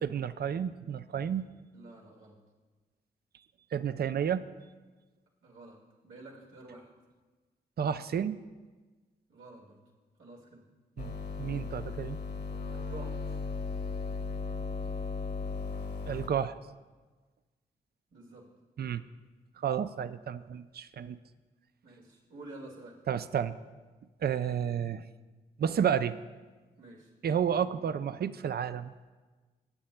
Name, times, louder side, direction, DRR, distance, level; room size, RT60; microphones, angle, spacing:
voice 1, 0.0-1.5 3.7-4.5 7.8-8.4 11.0-11.1 11.4-12.2 16.1-16.6 18.8-19.0 19.6-21.2 23.1-23.6 24.2-25.0 25.6-26.2 27.2-28.9, right 8 dB, 55° right, 13 dB, 0.5 m, -31 dB
voice 2, 1.7-2.4 5.4-6.9 9.3-9.8 10.2-10.6 12.7-13.3 18.1-18.5 21.8-23.0 26.8-27.1, right 2 dB, 80° right, -3 dB, 2.0 m, -49 dB
sound 1, 11.0-16.3, left 4 dB, 60° left, 1.1 m, -36 dB
18.0 x 8.5 x 2.2 m, 1.3 s
supercardioid pair, 40°, 20 cm